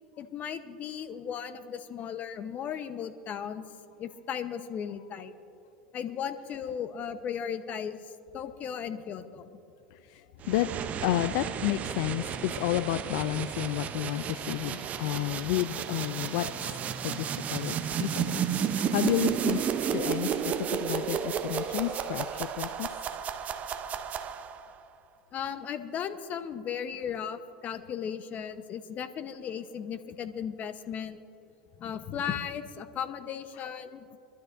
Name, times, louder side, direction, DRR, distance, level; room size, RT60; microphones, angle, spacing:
voice 1, 0.2-3.6 4.0-5.3 5.9-9.5 25.3-31.2 31.8-34.2, left 8 dB, 40° left, 10 dB, 1.0 m, -36 dB
voice 2, 9.9-10.7 11.0-16.8 17.0-19.6 19.9-22.9 33.5-33.6, left 15 dB, 65° left, 12 dB, 0.5 m, -31 dB
sound 1, 10.4-24.7, right 8 dB, 40° right, 0.8 m, -32 dB
26.0 x 12.5 x 2.7 m, 2.8 s
hypercardioid pair, 95°, 4 cm